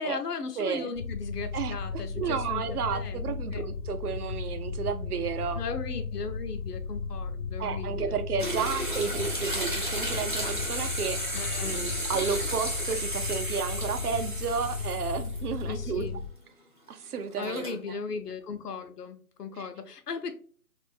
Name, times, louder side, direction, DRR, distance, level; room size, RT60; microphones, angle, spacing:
voice 1, 0.0-3.7 5.6-8.2 8.8-8.9 11.3-11.9 15.7-16.2 17.4-20.3, left 5 dB, 85° left, 7 dB, 0.8 m, -37 dB
voice 2, 0.6-0.9 1.5-5.6 7.6-16.1 16.9-18.0 19.6-19.7, right 6 dB, 75° right, 9 dB, 0.6 m, -32 dB
sound 1, 1.0-16.3, left 4 dB, 55° left, 0.5 m, -35 dB
sound 2, 8.4-15.6 16.0-16.1 17.3-17.8, right 1 dB, 35° right, 0.5 m, -34 dB
3.0 x 2.5 x 3.3 m, 0.44 s
hypercardioid pair, 170°, 46 cm